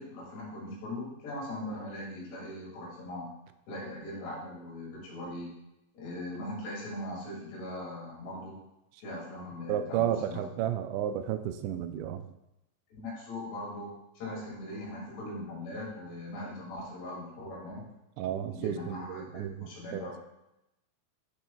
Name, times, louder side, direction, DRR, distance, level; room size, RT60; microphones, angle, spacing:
voice 1, 0.0-3.3 3.7-5.5 5.9-8.5 9.0-10.7 12.9-17.8 18.5-20.1, left 1 dB, 70° left, -4 dB, 4.1 m, -40 dB
voice 2, 9.7-12.3 18.2-20.2, right 10 dB, 85° right, 9 dB, 2.6 m, -32 dB
10.5 x 7.4 x 2.3 m, 0.88 s
omnidirectional pair, 5.2 m